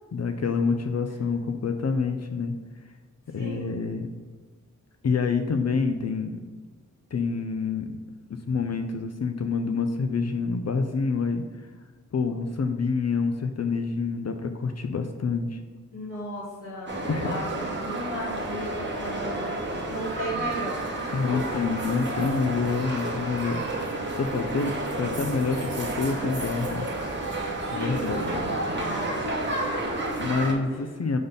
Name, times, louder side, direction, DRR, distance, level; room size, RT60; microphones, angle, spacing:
voice 1, 0.1-2.5 3.3-4.1 5.0-6.4 7.1-7.9 8.3-11.4 12.1-15.6 17.1-17.4 21.1-26.9 27.7-28.3 30.2-31.2, left 4 dB, 55° left, 6 dB, 0.5 m, -27 dB
voice 2, 3.4-3.7 15.9-21.6 22.8-23.1 27.6-28.2 28.7-30.1 30.7-31.0, equal, 75° left, -9 dB, 1.8 m, -36 dB
sound 1, 16.9-30.5, right 2 dB, 35° right, 1.2 m, -31 dB
5.2 x 4.0 x 5.5 m, 1.4 s
wide cardioid pair, 110°, 31 cm